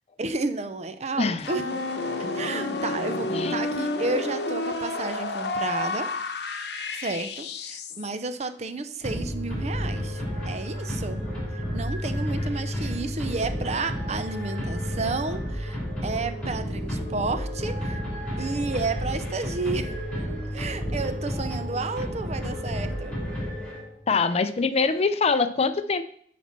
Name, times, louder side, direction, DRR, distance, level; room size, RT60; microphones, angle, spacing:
voice 1, 0.2-1.6 2.3-6.1 6.9-11.2 11.5-18.0 18.4-19.9 20.5-23.2, right 3 dB, 40° right, 10 dB, 0.6 m, -31 dB
voice 2, 1.2-1.5 3.3-3.5 24.1-26.0, left 4 dB, 35° left, 11 dB, 0.5 m, -24 dB
sound 1, 1.4-8.1, left 2 dB, 70° left, 0.9 m, -30 dB
sound 2, 9.0-24.1, equal, 5° left, 3.1 m, -31 dB
8.5 x 4.2 x 5.9 m, 0.62 s
head